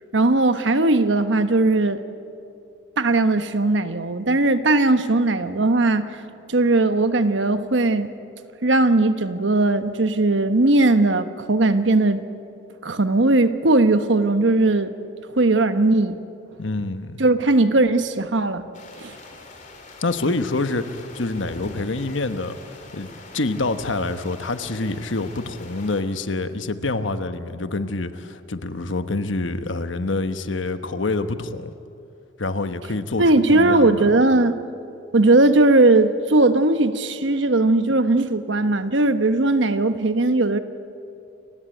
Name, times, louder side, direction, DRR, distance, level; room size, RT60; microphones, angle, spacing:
voice 1, 0.1-2.0 3.0-6.1 6.5-8.1 8.6-12.2 12.8-14.9 15.4-16.2 17.2-18.7 19.0-19.1 33.2-34.6 35.1-40.6, right 2 dB, 70° right, 10 dB, 1.1 m, -18 dB
voice 2, 16.6-17.2 20.0-22.6 22.9-23.1 23.3-31.7 32.4-34.1, left 2 dB, 75° left, 10 dB, 1.1 m, -26 dB
sound 1, 18.7-26.0, left 2 dB, 40° left, 3.1 m, -43 dB
29.0 x 16.5 x 9.0 m, 2.6 s
head